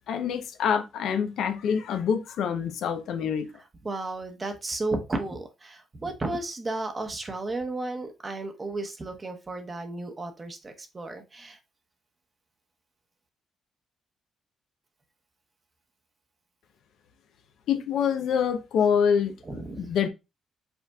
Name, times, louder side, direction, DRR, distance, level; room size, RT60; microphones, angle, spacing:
voice 1, 0.1-3.5 17.7-19.3 19.8-20.1, left 7 dB, 75° left, 0.6 m, -26 dB
voice 2, 3.8-11.6 19.4-19.9, right 2 dB, 30° right, 0.9 m, -33 dB
5.3 x 4.2 x 2.3 m
cardioid pair, 90°, 0 cm